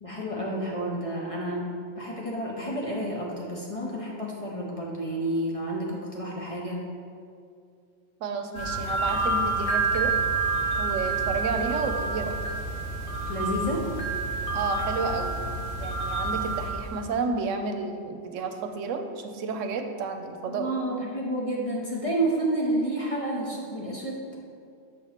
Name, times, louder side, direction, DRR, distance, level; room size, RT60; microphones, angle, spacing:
voice 1, 0.0-1.7 2.0-6.8 13.3-13.9 20.5-24.4, right 1 dB, 35° left, -3 dB, 0.7 m, -30 dB
voice 2, 8.2-10.1 10.8-12.4 14.5-15.4 15.8-20.7, right 4 dB, 80° right, 6 dB, 0.9 m, -31 dB
sound 1, 8.5-16.9, right 3 dB, 65° left, 1.3 m, -28 dB
6.7 x 2.9 x 5.7 m, 2.3 s
omnidirectional pair, 1.3 m